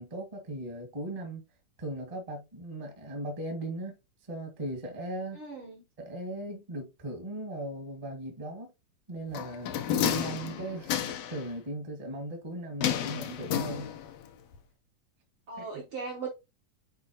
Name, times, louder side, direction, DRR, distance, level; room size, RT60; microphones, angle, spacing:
voice 1, 0.0-1.4 1.8-4.0 4.3-5.4 6.0-8.7 9.1-13.9 15.6-15.8, right 1 dB, 20° right, 0.9 m, -38 dB
voice 2, 5.3-5.8 11.0-11.2 15.5-16.3, right 4 dB, 60° right, 1.4 m, -39 dB
sound 1, 9.3-11.4 12.8-14.2 14.5-14.6, left 10 dB, 75° left, 1.5 m, -31 dB
8.1 x 4.3 x 2.9 m
omnidirectional pair, 3.9 m